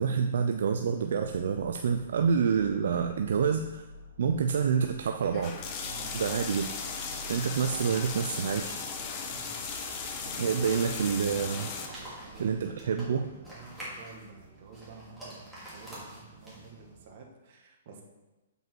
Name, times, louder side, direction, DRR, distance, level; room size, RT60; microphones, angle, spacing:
voice 1, 0.0-3.8 4.2-5.5 6.1-6.7 7.3-8.7 10.4-11.7 12.4-13.3, right 6 dB, 70° right, 6 dB, 0.5 m, -27 dB
sound 1, 1.0-17.1, right 2 dB, 85° right, 2.8 m, -50 dB
sound 2, 5.3-11.9, left 5 dB, 30° left, 1.0 m, -37 dB
sound 3, 6.4-16.9, right 1 dB, ahead, 2.7 m, -48 dB
voice 2, 10.2-11.3 11.9-18.0, right 4 dB, 45° right, 1 dB, 1.6 m, -50 dB
7.9 x 5.3 x 4.5 m, 1.1 s
hypercardioid pair, 150°, 0 cm